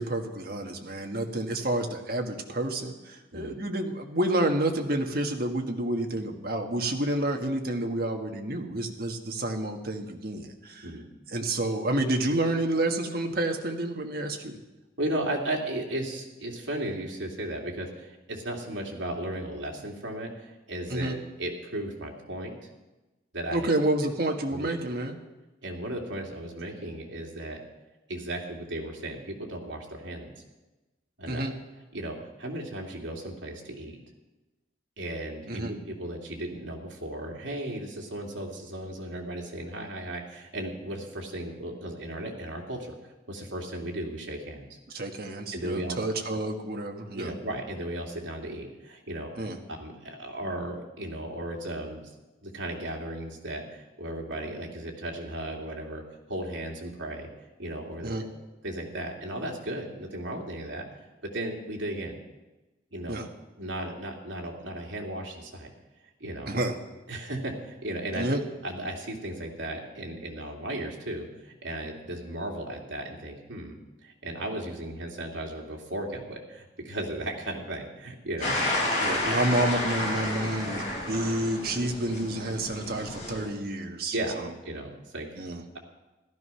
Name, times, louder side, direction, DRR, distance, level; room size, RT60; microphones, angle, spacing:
voice 1, 0.0-10.9 11.3-14.6 20.9-21.1 23.5-25.2 31.3-31.5 35.5-35.7 44.9-47.3 49.4-49.6 58.0-58.2 63.1-63.3 66.5-66.7 68.2-68.4 79.0-84.1 85.4-85.6, right 1 dB, 50° right, 3 dB, 1.6 m, -29 dB
voice 2, 15.0-22.7 23.3-23.7 24.5-24.8 25.6-27.6 28.1-30.3 31.2-31.5 31.9-34.0 35.0-42.9 43.3-44.6 45.5-46.0 47.2-52.1 52.4-56.0 56.3-57.3 57.6-58.3 58.6-60.9 61.2-62.2 62.9-63.2 63.6-65.7 66.2-66.6 67.1-68.3 68.6-73.8 74.0-78.6 79.2-79.4 84.1-85.3, right 1 dB, 75° right, 0 dB, 2.8 m, -35 dB
sound 1, 78.4-83.5, left 1 dB, 35° left, 5.2 m, -30 dB
15.0 x 13.0 x 5.7 m, 1.1 s
head